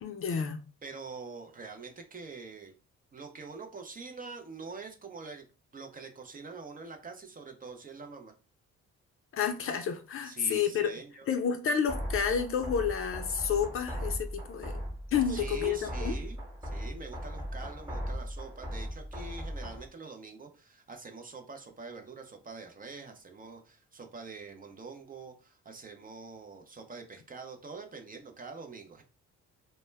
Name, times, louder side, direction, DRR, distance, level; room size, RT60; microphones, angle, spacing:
voice 1, 0.0-0.6 9.3-10.9 11.3-14.8 15.1-16.1, left 7 dB, 45° left, 0.5 m, -30 dB
voice 2, 0.8-2.7 3.1-5.5 5.7-8.3 10.2-11.3 15.3-29.0, right 4 dB, 30° right, 0.5 m, -45 dB
sound 1, 11.9-19.9, equal, 5° right, 1.0 m, -38 dB
2.1 x 2.1 x 3.2 m
cardioid pair, 90°, 30 cm